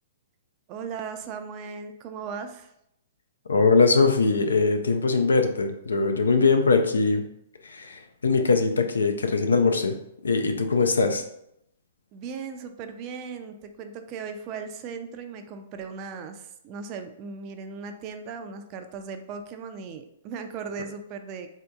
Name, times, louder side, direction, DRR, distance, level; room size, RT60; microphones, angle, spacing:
voice 1, 0.7-2.7 12.1-21.5, right 5 dB, 35° right, 7 dB, 0.4 m, -37 dB
voice 2, 3.5-7.2 7.6-10.0 10.2-11.2, left 4 dB, 85° left, 6 dB, 0.4 m, -21 dB
3.5 x 2.7 x 2.3 m, 0.78 s
hypercardioid pair, 125°, 0 cm